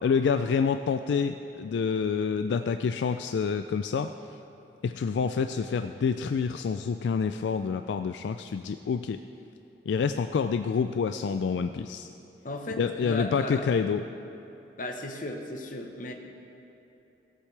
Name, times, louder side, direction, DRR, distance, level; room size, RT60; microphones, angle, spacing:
voice 1, 0.0-4.1 4.8-9.2 9.9-12.1 12.8-14.0, left 6 dB, 80° left, 8 dB, 0.3 m, -27 dB
voice 2, 12.4-13.7 14.8-16.1, left 1 dB, 50° left, 3 dB, 1.0 m, -35 dB
17.5 x 8.2 x 3.3 m, 3.0 s
head